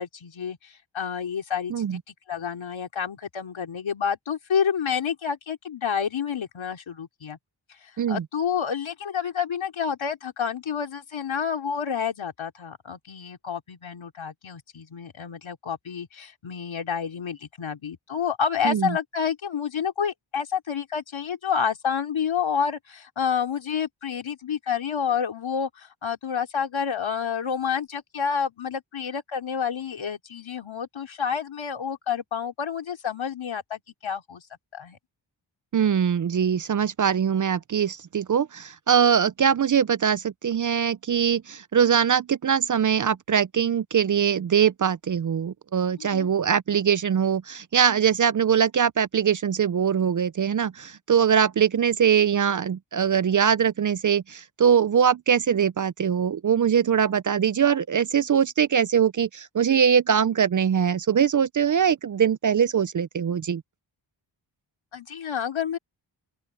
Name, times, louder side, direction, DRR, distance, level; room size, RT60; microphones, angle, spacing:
voice 1, 0.0-2.0 2.3-7.4 7.8-34.5 34.7-35.0 46.0-46.3 64.9-65.8, left 7 dB, 75° left, 3.3 m, -29 dB
voice 2, 18.6-19.0 35.7-63.6, right 8 dB, 40° right, 0.5 m, -22 dB
open air
wide cardioid pair, 105°, 47 cm